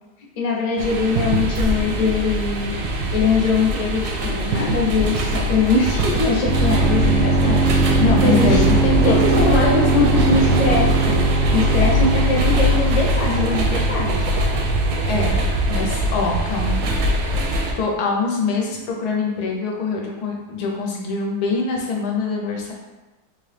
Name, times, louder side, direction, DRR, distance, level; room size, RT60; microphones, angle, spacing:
voice 1, 0.4-7.6 8.2-8.6 9.0-14.2, left 3 dB, 55° left, -3 dB, 0.4 m, -22 dB
sound 1, 0.8-17.7, equal, 85° right, 1.1 m, -22 dB
sound 2, 6.5-16.1, right 3 dB, 65° right, 0.8 m, -21 dB
voice 2, 8.0-9.8 15.1-15.4 15.7-16.9 17.7-22.7, left 4 dB, 80° left, 0 dB, 1.3 m, -24 dB
3.6 x 2.8 x 3.2 m, 1.1 s
omnidirectional pair, 1.7 m